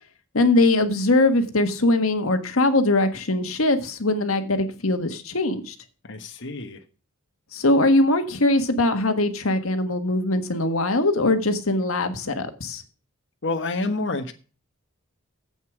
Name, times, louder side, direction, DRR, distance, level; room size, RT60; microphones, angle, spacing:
voice 1, 0.3-5.7 7.5-12.8, left 2 dB, 85° left, 1.5 m, -21 dB
voice 2, 6.0-6.8 13.4-14.3, left 2 dB, 60° left, 1.3 m, -28 dB
8.2 x 8.1 x 6.1 m
head